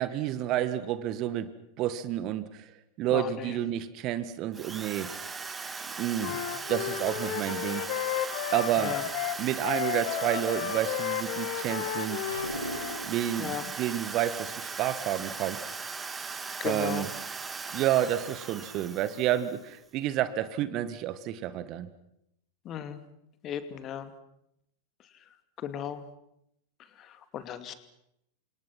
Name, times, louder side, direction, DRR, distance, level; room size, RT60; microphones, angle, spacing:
voice 1, 0.0-1.5 1.8-2.7 3.0-5.1 6.0-6.3 6.7-7.8 8.5-9.0 9.4-12.2 13.0-15.6 16.6-17.1 17.7-21.9, right 12 dB, 40° right, 14 dB, 1.6 m, -30 dB
voice 2, 3.1-3.5 6.3-6.4 8.8-9.0 13.4-13.6 16.6-17.0 22.7-23.0 23.4-24.1 25.6-26.0 27.3-27.7, left 9 dB, 30° left, 10 dB, 2.5 m, -35 dB
Drill, 4.5-19.7, right 4 dB, 15° right, 2.3 m, -38 dB
Wind instrument woodwind instrument, 6.2-13.0, left 11 dB, 50° left, 2.2 m, -33 dB
sound 1, 12.3-13.3, right 1 dB, 90° right, 3.4 m, -37 dB
29.5 x 26.5 x 6.1 m, 0.80 s
figure-of-eight pair, 90°, 0 cm